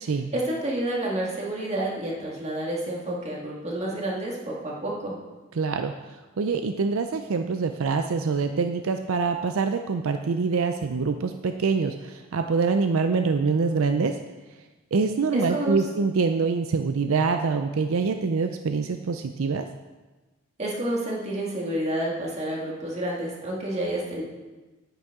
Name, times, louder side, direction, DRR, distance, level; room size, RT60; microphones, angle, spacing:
voice 1, 0.3-5.2 15.3-15.8 20.6-24.2, right 1 dB, 30° right, -3 dB, 1.9 m, -29 dB
voice 2, 5.6-14.2 14.9-19.7, right 4 dB, 75° right, 7 dB, 0.5 m, -25 dB
9.9 x 9.0 x 3.7 m, 1.2 s
head